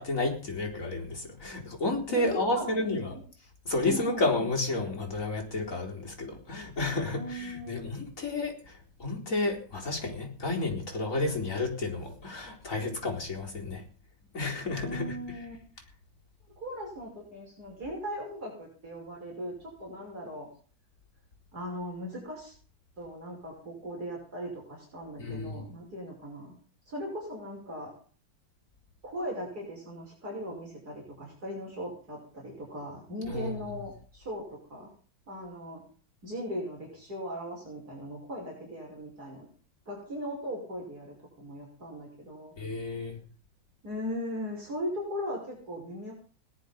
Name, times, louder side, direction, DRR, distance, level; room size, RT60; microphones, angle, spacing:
voice 1, 0.0-3.0 3.7-8.5 9.0-13.8 14.3-15.1 25.2-25.7 33.3-33.6 42.6-43.2, left 2 dB, 45° left, 0 dB, 4.5 m, -31 dB
voice 2, 2.1-3.2 3.8-4.3 7.1-7.9 14.8-15.6 16.6-20.5 21.5-22.5 23.0-26.5 26.9-27.9 29.0-34.9 35.3-35.8 36.2-39.5 39.9-42.5 43.8-46.1, equal, 55° right, -1 dB, 6.2 m, -38 dB
17.5 x 11.5 x 5.2 m, 0.40 s
omnidirectional pair, 2.0 m